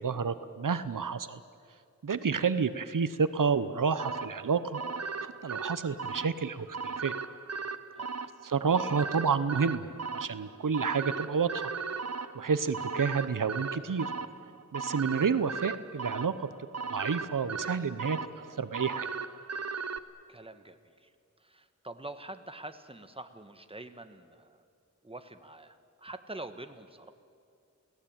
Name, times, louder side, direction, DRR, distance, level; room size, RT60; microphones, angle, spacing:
voice 1, 0.0-1.4 2.0-4.8 5.2-7.1 8.4-9.8 10.1-11.7 12.3-14.1 14.7-16.5 16.9-18.2 18.6-19.1, right 5 dB, 85° right, 13 dB, 0.9 m, -29 dB
sound 1, 4.0-20.0, right 5 dB, 55° right, 1.0 m, -38 dB
voice 2, 20.3-21.1 21.4-24.6 25.0-27.1, right 2 dB, 20° right, 8 dB, 1.5 m, -45 dB
29.0 x 18.5 x 8.9 m, 2.3 s
wide cardioid pair, 70°, 31 cm